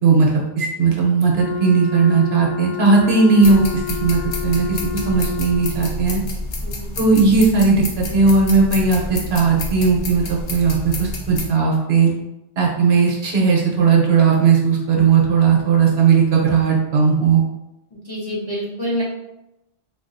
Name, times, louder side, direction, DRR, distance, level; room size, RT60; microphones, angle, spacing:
voice 1, 0.0-4.8 5.0-6.2 7.0-12.1 12.6-17.4, right 5 dB, 65° right, -2 dB, 0.9 m, -17 dB
Wind instrument woodwind instrument, 1.3-6.0, left 8 dB, 80° left, 0.3 m, -29 dB
sound 1, 3.4-11.5, left 1 dB, 60° left, 0.8 m, -29 dB
voice 2, 17.9-19.0, equal, 30° left, -7 dB, 0.6 m, -27 dB
3.9 x 2.3 x 2.5 m, 0.92 s
omnidirectional pair, 1.2 m